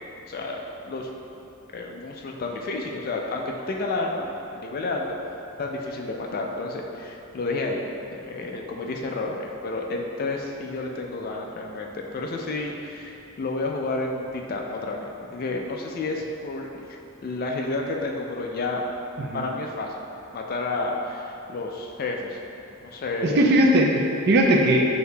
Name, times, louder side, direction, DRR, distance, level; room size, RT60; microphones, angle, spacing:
voice 1, 0.2-1.1 1.7-4.3 4.5-7.9 8.1-15.0 15.3-18.8 19.3-20.0 20.3-22.4 22.8-23.4, left 2 dB, 40° left, 1 dB, 0.3 m, -30 dB
voice 2, 23.2-24.8, right 1 dB, 50° right, 0 dB, 0.4 m, -19 dB
6.5 x 2.7 x 2.2 m, 2.8 s
head